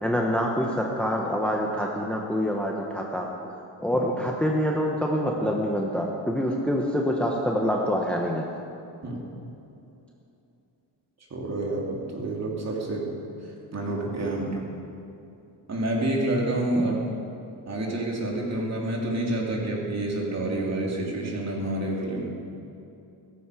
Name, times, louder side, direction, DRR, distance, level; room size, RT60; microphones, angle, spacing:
voice 1, 0.0-3.2 3.8-8.4, equal, 5° left, -1 dB, 1.2 m, -26 dB
voice 2, 11.3-14.6 15.7-17.0 17.7-22.3, right 1 dB, 40° right, -2 dB, 3.2 m, -28 dB
16.5 x 14.5 x 5.0 m, 2.7 s
cardioid pair, 135°, 42 cm